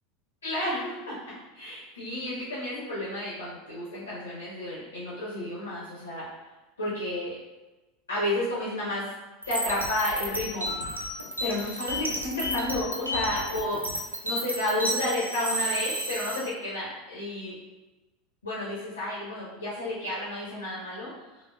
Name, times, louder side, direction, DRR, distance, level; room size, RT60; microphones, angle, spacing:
voice 1, 0.4-6.3 6.8-7.4 8.1-9.1 9.5-10.7 11.4-13.9 14.2-17.6 18.4-21.1, left 1 dB, 75° left, -7 dB, 0.7 m, -31 dB
sound 1, 9.4-16.4, equal, 85° right, 0.4 m, -32 dB
3.3 x 2.0 x 2.3 m, 1.1 s
figure-of-eight pair, 80°, 0 cm